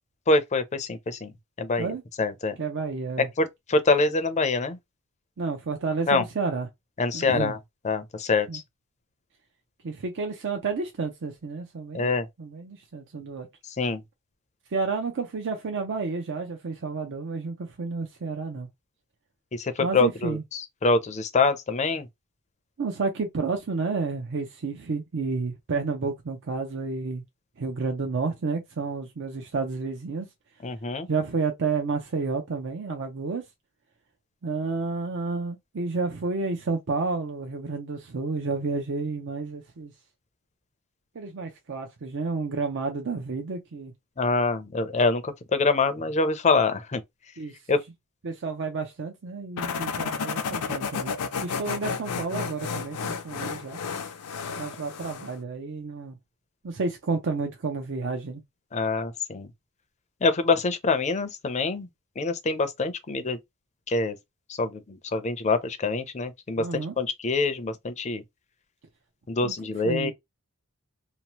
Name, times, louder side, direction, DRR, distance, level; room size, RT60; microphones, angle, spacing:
voice 1, 0.3-1.3 1.6-1.9 2.2-2.6 3.4-4.8 6.1-6.2 7.0-7.6 7.8-8.6 11.9-12.3 13.8-14.0 19.5-22.1 30.6-31.1 44.2-47.0 47.7-47.8 58.7-59.5 60.2-61.9 62.2-63.4 63.9-64.2 64.6-68.2 69.3-70.1, left 3 dB, 30° left, 0.5 m, -25 dB
voice 2, 2.6-3.3 5.4-6.7 7.1-7.5 8.5-8.6 9.8-12.1 12.4-13.5 14.7-18.7 19.8-20.4 22.8-27.2 27.6-30.3 31.1-33.4 34.4-39.9 41.1-43.9 47.4-47.6 48.2-51.1 51.4-53.8 54.6-56.2 56.6-58.4 66.6-66.9 69.4-69.5 69.8-70.1, right 4 dB, 55° right, 0.6 m, -30 dB
sound 1, 49.6-55.4, left 5 dB, 85° left, 0.5 m, -32 dB
2.8 x 2.0 x 2.9 m
head